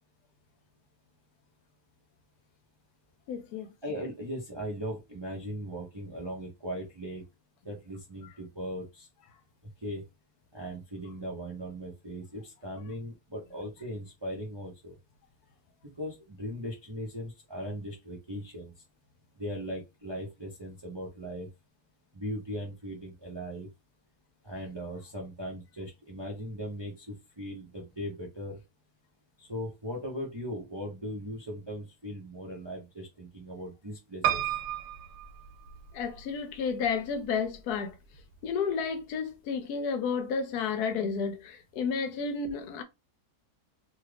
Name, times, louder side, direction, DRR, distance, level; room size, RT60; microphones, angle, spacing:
voice 1, 3.3-3.7 35.9-38.0 38.4-42.8, left 5 dB, 75° left, 1.1 m, -31 dB
voice 2, 3.8-7.2 7.6-9.1 9.8-10.0 10.5-15.0 16.0-18.7 19.4-21.5 22.1-23.7 24.4-28.6 29.4-34.5, equal, 35° right, 0.4 m, -38 dB
Piano, 34.2-36.2 36.8-37.6 37.9-38.0 38.2-38.3, right 11 dB, 85° right, 1.2 m, -32 dB
2.9 x 2.4 x 3.2 m
omnidirectional pair, 1.8 m